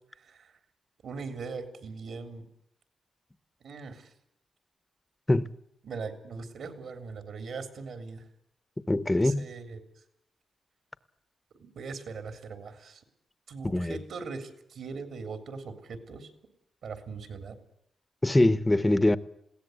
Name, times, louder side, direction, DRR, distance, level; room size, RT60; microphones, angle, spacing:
voice 1, 0.1-0.5 1.0-2.5 3.6-4.1 5.8-8.3 9.1-10.0 11.5-13.0 13.5-16.3 16.8-17.6, right 4 dB, 65° right, 3.6 m, -40 dB
voice 2, 8.9-9.5 13.7-14.0 18.2-19.2, left 1 dB, 10° left, 0.8 m, -23 dB
21.5 x 17.0 x 8.0 m
wide cardioid pair, 170°, 0 cm